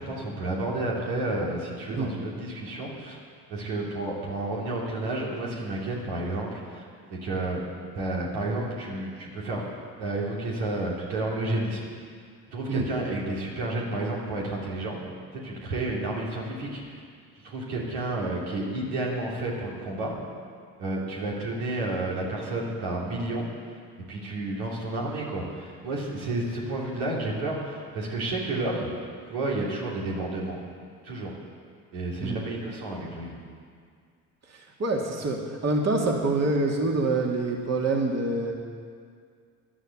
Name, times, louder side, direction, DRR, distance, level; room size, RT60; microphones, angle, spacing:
voice 1, 0.0-3.2 3.5-6.8 7.1-7.6 7.9-9.6 10.0-11.8 12.5-15.0 15.3-17.0 17.4-20.2 20.8-23.5 24.1-28.9 29.3-30.6 31.0-31.3 31.9-33.3, right 2 dB, 85° right, -3 dB, 2.9 m, -31 dB
voice 2, 34.5-38.5, right 2 dB, 40° right, 0 dB, 2.3 m, -26 dB
11.5 x 11.0 x 7.8 m, 2.1 s
hypercardioid pair, 60°, 42 cm